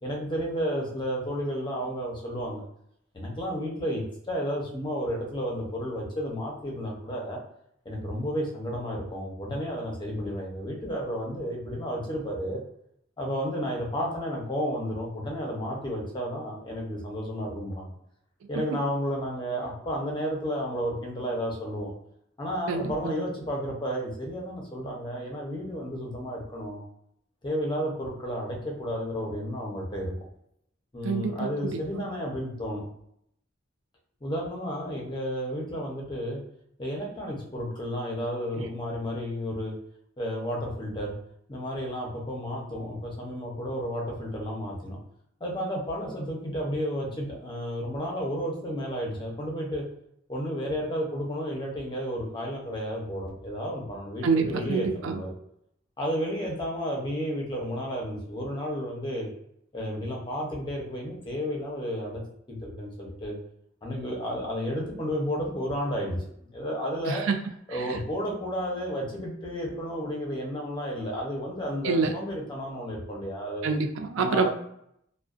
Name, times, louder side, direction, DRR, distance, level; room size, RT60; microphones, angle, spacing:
voice 1, 0.0-2.6 3.1-7.4 7.8-12.6 13.2-17.9 18.5-21.9 22.4-26.8 27.4-30.1 30.9-32.8 34.2-36.4 36.8-39.7 40.2-41.1 41.5-45.0 45.4-49.8 50.3-55.3 56.0-59.3 59.7-62.2 62.5-63.4 63.8-67.3 67.7-73.7 74.2-74.5, equal, 25° left, -2 dB, 0.6 m, -32 dB
voice 2, 22.7-23.2 31.0-32.0 38.6-38.7 54.2-55.2 67.1-67.4 67.9-68.0 71.8-72.1 73.6-74.5, right 4 dB, 75° right, 5 dB, 0.4 m, -27 dB
2.4 x 2.1 x 2.4 m, 0.73 s
head